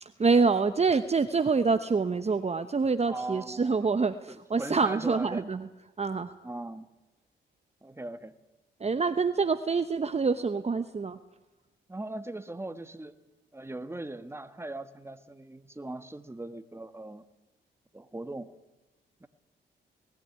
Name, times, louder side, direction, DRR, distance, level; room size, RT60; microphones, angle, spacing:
voice 1, 0.0-5.7 6.0-6.3 8.8-11.2, right 4 dB, 30° right, 10 dB, 1.0 m, -26 dB
voice 2, 3.1-5.4 6.4-6.9 7.8-8.3 11.9-13.2 13.5-17.2 17.9-18.5 19.2-19.3, right 2 dB, 10° right, 10 dB, 1.4 m, -40 dB
20.0 x 15.0 x 9.6 m, 1.1 s
cardioid pair, 65°, 20 cm